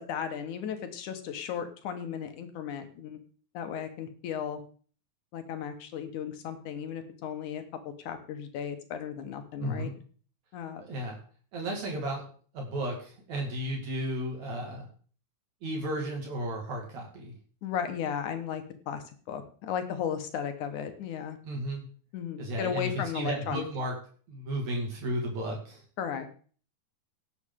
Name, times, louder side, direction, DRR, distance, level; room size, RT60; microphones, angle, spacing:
voice 1, 0.0-3.2 3.5-4.6 5.3-7.6 8.0-9.9 10.5-10.8 17.6-21.4 22.1-23.7 26.0-26.3, left 8 dB, 80° left, 7 dB, 2.7 m, -35 dB
voice 2, 9.6-9.9 10.8-11.2 11.5-12.2 12.5-14.9 15.6-17.3 21.4-21.8 22.4-23.9 24.3-25.8, right 1 dB, 65° right, 0 dB, 3.4 m, -33 dB
17.5 x 8.2 x 3.7 m, 0.42 s
omnidirectional pair, 3.5 m